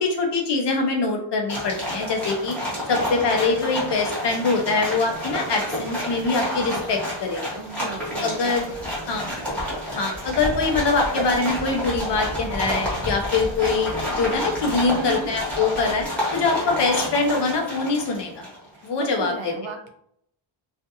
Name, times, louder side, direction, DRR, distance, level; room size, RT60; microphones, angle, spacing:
voice 1, 0.0-2.6 2.9-7.6 8.2-8.7 9.1-9.4 9.9-16.1 16.3-18.5 18.8-19.7, left 4 dB, 60° left, 2 dB, 0.7 m, -24 dB
sound 1, 1.5-18.7, equal, 5° left, 0.9 m, -30 dB
sound 2, 6.2-6.4 6.7-7.0 7.3-7.4 7.9-8.1 8.4-16.1, equal, 20° right, 0.5 m, -37 dB
voice 2, 7.6-8.8 14.9-15.4 18.7-19.9, right 6 dB, 70° right, 5 dB, 0.6 m, -36 dB
2.4 x 2.4 x 2.7 m, 0.71 s
wide cardioid pair, 160°, 48 cm